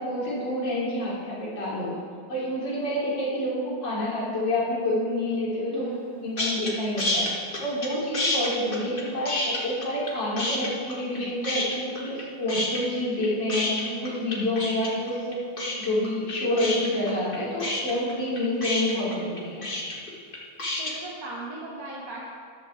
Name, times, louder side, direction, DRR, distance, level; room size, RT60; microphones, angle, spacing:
voice 1, 0.0-1.9 2.3-5.8 6.2-7.3 7.6-13.7 14.0-15.4 15.8-19.7, left 1 dB, 80° left, -7 dB, 4.3 m, -28 dB
voice 2, 5.7-6.3 13.8-14.1 20.8-22.3, right 2 dB, 55° right, -5 dB, 2.0 m, -37 dB
sound 1, 6.4-6.7 7.0-7.9 8.1-10.1 10.4-11.2 11.4-12.2 12.5-20.9, left 2 dB, 30° left, 1.8 m, -29 dB
14.0 x 11.5 x 3.6 m, 2.1 s
omnidirectional pair, 1.9 m